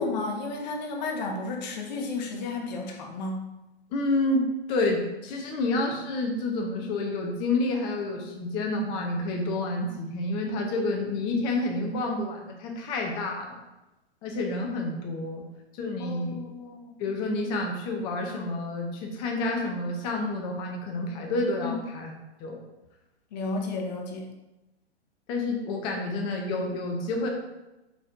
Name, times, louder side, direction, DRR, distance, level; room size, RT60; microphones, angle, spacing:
voice 1, 0.0-3.5 16.0-16.8 21.6-21.8 23.3-24.3, left 3 dB, 40° left, 2 dB, 0.8 m, -32 dB
voice 2, 3.9-13.6 14.2-15.4 15.7-16.4 17.0-22.1 22.4-22.6 25.3-27.3, left 2 dB, 15° left, 1 dB, 0.4 m, -29 dB
4.4 x 3.9 x 2.5 m, 0.99 s
figure-of-eight pair, 120°, 32 cm